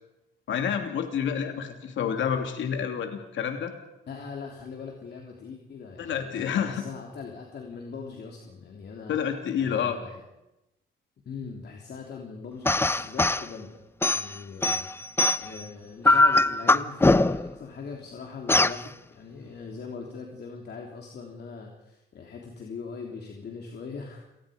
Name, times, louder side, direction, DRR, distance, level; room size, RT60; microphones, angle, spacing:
voice 1, 0.5-3.7 6.0-6.8 9.1-10.0, left 8 dB, 70° left, 5 dB, 2.9 m, -28 dB
voice 2, 4.1-9.2 9.6-10.2 11.2-13.8 14.1-24.2, left 5 dB, 55° left, 1 dB, 3.3 m, -41 dB
sound 1, 12.7-13.5 14.0-15.6 16.0-17.5 18.5-18.8, left 2 dB, 10° left, 0.6 m, -21 dB
28.0 x 19.0 x 5.2 m, 0.94 s
cardioid pair, 90°, 20 cm